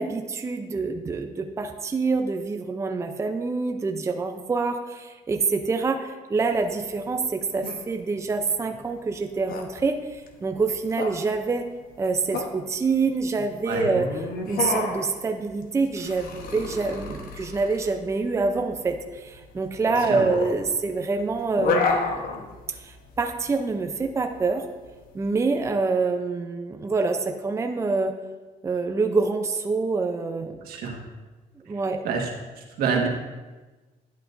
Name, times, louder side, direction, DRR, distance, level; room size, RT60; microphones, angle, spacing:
voice 1, 0.0-14.1 14.5-22.2 22.7-24.7 25.1-28.1 28.6-30.6 31.6-32.0, right 4 dB, 20° right, 5 dB, 0.6 m, -26 dB
sound 1, 6.4-25.6, left 4 dB, 70° left, 1.1 m, -32 dB
voice 2, 30.6-31.0 32.0-32.3 32.8-33.1, right 6 dB, 90° right, 0 dB, 1.6 m, -26 dB
11.5 x 8.3 x 2.6 m, 1.2 s
cardioid pair, 130°, 15 cm